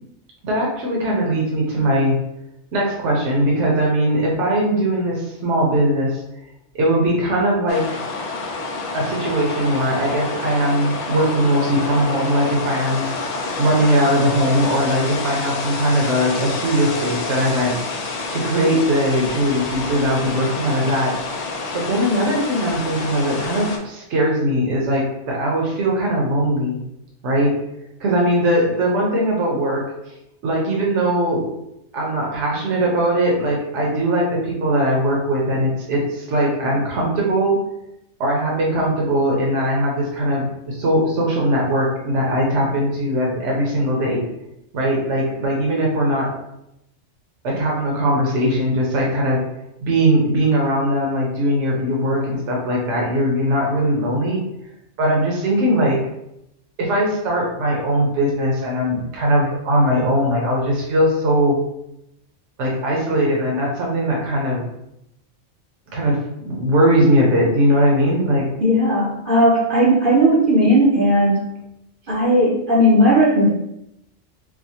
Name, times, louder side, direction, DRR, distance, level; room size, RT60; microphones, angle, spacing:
voice 1, 0.4-2.1 2.7-6.2 6.8-7.8 8.9-13.1 13.6-17.7 18.3-21.1 21.7-26.8 27.2-27.5 28.0-30.1 30.4-31.4 31.9-37.6 38.2-44.2 44.7-46.3 47.4-49.4 49.8-54.4 55.0-56.0 56.8-61.6 62.6-64.7 65.9-68.5, equal, 70° right, -2 dB, 1.1 m, -20 dB
sound 1, 7.7-23.8, left 3 dB, 85° left, 0.3 m, -28 dB
voice 2, 68.6-71.5 72.1-73.5, equal, 50° right, -5 dB, 0.7 m, -16 dB
4.7 x 2.1 x 2.8 m, 0.83 s
omnidirectional pair, 1.3 m